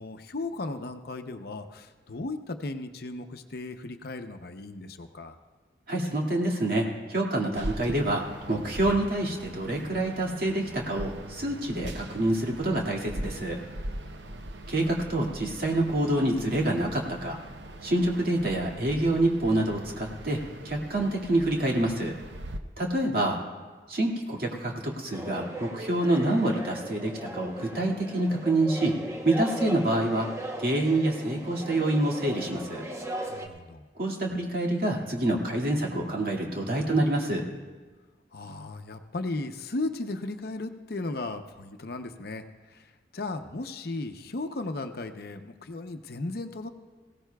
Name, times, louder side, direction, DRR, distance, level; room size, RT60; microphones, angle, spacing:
voice 1, 0.0-5.4 14.0-14.4 33.3-33.8 38.3-42.9 43.1-46.7, left 2 dB, 60° left, 7 dB, 0.7 m, -36 dB
voice 2, 5.9-8.2 8.5-13.6 14.7-17.4 17.8-20.4 20.6-22.1 22.8-23.4 23.9-28.9 29.2-30.3 30.6-32.8 34.0-37.5, right 1 dB, 55° right, -1 dB, 2.1 m, -27 dB
sound 1, 7.6-22.6, right 1 dB, 80° right, 0.8 m, -41 dB
sound 2, 25.1-33.5, right 1 dB, 15° right, 0.8 m, -38 dB
19.5 x 16.5 x 2.3 m, 1.3 s
head